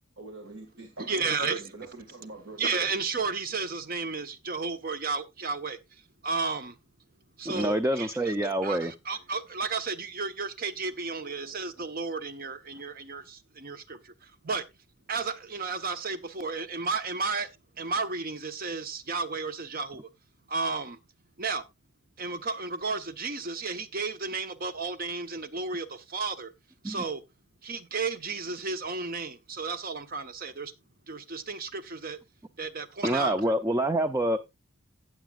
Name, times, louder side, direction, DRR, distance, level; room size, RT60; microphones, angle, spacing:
voice 1, 0.2-2.7, right 2 dB, 65° right, 1.9 m, -44 dB
voice 2, 1.0-1.6 2.6-6.8 7.4-8.3 8.6-14.6 15.1-17.5 17.8-20.0 20.5-21.0 21.4-21.6 22.2-26.5 26.8-27.2 27.6-30.7 31.1-32.2 32.6-33.4, right 4 dB, 45° right, 0.9 m, -33 dB
voice 3, 7.5-8.9 26.8-27.0 33.0-34.4, right 1 dB, 15° right, 0.4 m, -26 dB
16.5 x 7.2 x 2.4 m
head